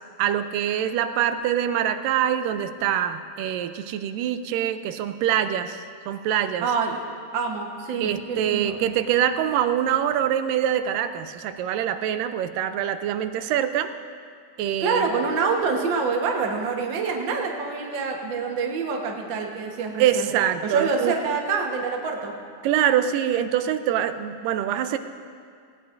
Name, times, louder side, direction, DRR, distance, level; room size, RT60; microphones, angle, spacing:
voice 1, 0.2-6.7 8.0-13.9 14.6-15.2 20.0-21.2 22.6-25.0, right 10 dB, 90° right, 10 dB, 2.3 m, -24 dB
voice 2, 6.6-7.0 7.3-8.8 14.8-20.3 20.6-22.3, right 4 dB, 55° right, 1 dB, 1.3 m, -26 dB
18.5 x 17.0 x 2.6 m, 2.2 s
omnidirectional pair, 3.8 m